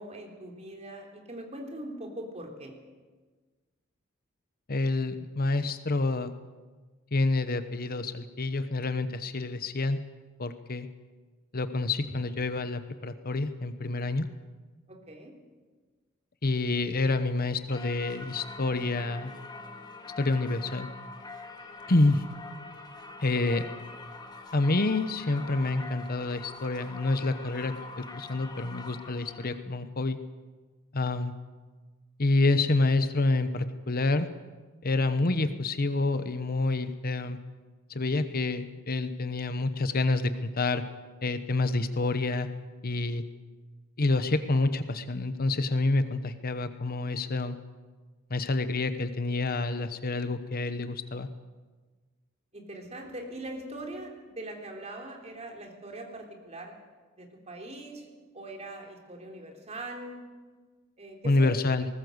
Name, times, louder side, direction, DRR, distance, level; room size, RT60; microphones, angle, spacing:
voice 1, 0.0-2.7 14.9-15.4 23.5-23.7 52.5-56.8 57.2-58.1 58.3-60.2 61.0-61.5, right 1 dB, 30° right, 2 dB, 3.6 m, -41 dB
voice 2, 4.7-6.3 7.1-10.0 10.4-10.9 11.5-14.3 16.4-19.3 20.2-20.9 21.9-22.3 23.2-23.6 24.5-30.2 30.9-31.3 32.2-34.3 34.8-37.4 37.9-40.8 41.2-42.5 42.8-43.2 44.0-47.6 48.3-51.3 61.2-61.9, left 2 dB, 45° left, 11 dB, 1.0 m, -28 dB
Singing / Church bell, 17.7-29.6, left 3 dB, 20° left, 1.9 m, -44 dB
19.5 x 19.5 x 8.0 m, 1.4 s
head